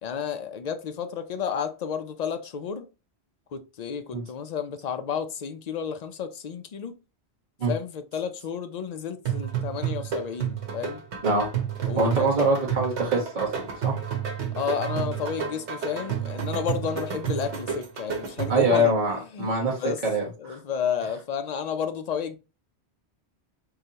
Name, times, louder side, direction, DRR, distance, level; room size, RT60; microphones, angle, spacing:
voice 1, 0.0-2.9 3.5-6.9 7.7-11.0 11.9-12.3 14.5-18.9 19.3-20.0 20.4-22.4, left 7 dB, 55° left, 0.5 m, -31 dB
sound 1, 9.3-18.8, right 8 dB, 90° right, 1.2 m, -31 dB
voice 2, 11.9-13.5 13.8-14.0 18.5-20.6, right 1 dB, 45° right, 1.2 m, -24 dB
3.9 x 3.2 x 2.8 m
omnidirectional pair, 1.1 m